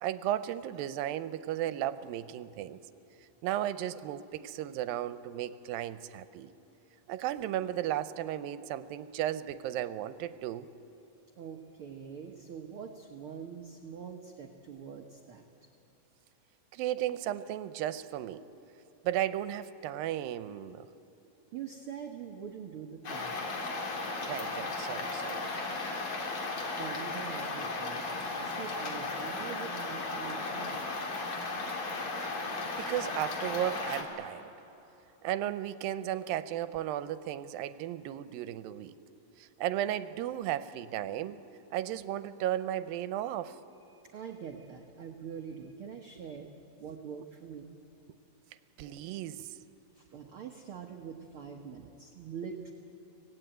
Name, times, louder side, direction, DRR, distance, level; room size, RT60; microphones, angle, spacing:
voice 1, 0.0-2.8 3.4-6.5 7.1-10.7 16.7-18.4 19.0-20.9 24.0-25.4 32.8-34.5 35.2-38.9 39.4-41.4 41.7-43.6 48.8-49.6, right 12 dB, 85° right, 14 dB, 2.4 m, -35 dB
voice 2, 11.4-15.4 21.5-23.4 26.8-30.8 43.9-46.5 46.8-47.7 49.9-52.7, right 7 dB, 65° right, 3 dB, 1.3 m, -44 dB
sound 1, 23.0-34.0, left 3 dB, 45° left, 2.7 m, -35 dB
25.0 x 18.0 x 9.1 m, 3.0 s
omnidirectional pair, 4.1 m